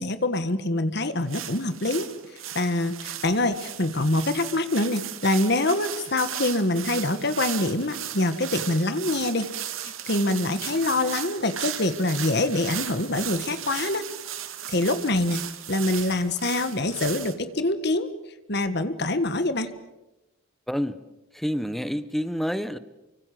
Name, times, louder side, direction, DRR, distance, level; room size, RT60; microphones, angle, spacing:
voice 1, 0.0-9.5 9.8-14.0 14.7-15.4 15.7-18.1 18.5-19.7, left 2 dB, 55° left, 10 dB, 1.6 m, -25 dB
sound 1, 1.3-17.3, right 11 dB, 80° right, 2.3 m, -36 dB
voice 2, 20.7-21.0 21.3-22.8, equal, ahead, 13 dB, 1.1 m, -28 dB
29.5 x 24.5 x 7.8 m, 1.0 s
head